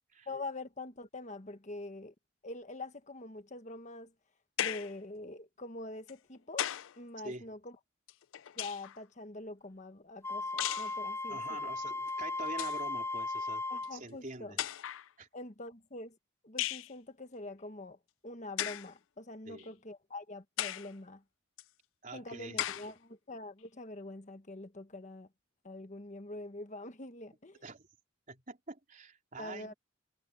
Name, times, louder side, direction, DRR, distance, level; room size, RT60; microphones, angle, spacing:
voice 1, 0.3-2.1 2.4-4.1 4.6-6.7 7.0-7.7 8.6-11.7 13.7-14.6 15.3-16.2 16.4-18.0 18.2-21.2 22.1-25.3 25.6-27.6 29.4-29.7, left 2 dB, 35° left, 1.3 m, -44 dB
sound 1, 4.6-5.0 6.1-7.0 8.1-9.0 10.6-11.0 12.1-12.2 12.5-12.8 13.8-13.9 14.6-15.1 16.6-16.9 18.6-18.9 19.6-19.7 20.6-20.9 21.6-21.7 22.6-22.9, left 13 dB, 75° left, 0.4 m, -36 dB
Wind instrument woodwind instrument, 10.2-14.0, left 3 dB, 15° left, 2.2 m, -36 dB
voice 2, 11.3-13.6 13.9-14.6 15.2-15.3 19.5-19.8 22.0-22.6 27.6-27.9 28.3-29.7, right 2 dB, 40° right, 3.8 m, -46 dB
head